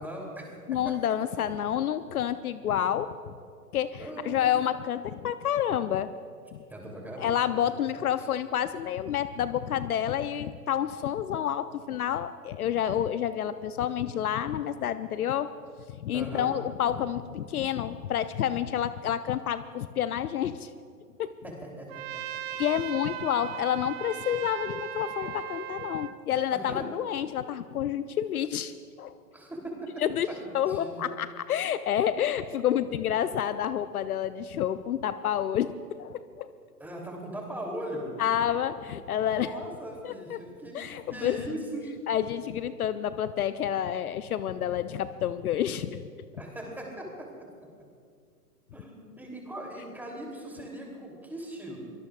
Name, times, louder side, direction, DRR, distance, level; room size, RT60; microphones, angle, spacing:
voice 1, 0.0-0.5 0.9-1.0 4.0-4.4 6.7-7.4 7.7-8.1 16.1-16.5 21.4-22.0 26.7-26.8 29.3-30.0 30.4-31.0 36.8-38.1 39.1-40.8 41.1-41.9 46.4-47.3 48.7-51.8, right 1 dB, 5° right, -1 dB, 3.1 m, -39 dB
voice 2, 0.7-3.3 3.7-6.1 6.5-6.6 7.2-15.5 15.9-20.7 21.2-21.3 22.6-29.2 30.0-30.3 30.5-36.5 38.2-39.5 40.0-40.4 40.7-41.5 42.1-46.1, left 10 dB, 65° left, 13 dB, 0.7 m, -29 dB
Trumpet, 21.9-26.2, right 11 dB, 40° right, 0.9 m, -38 dB
24.0 x 18.0 x 2.5 m, 2.2 s
hypercardioid pair, 120°, 48 cm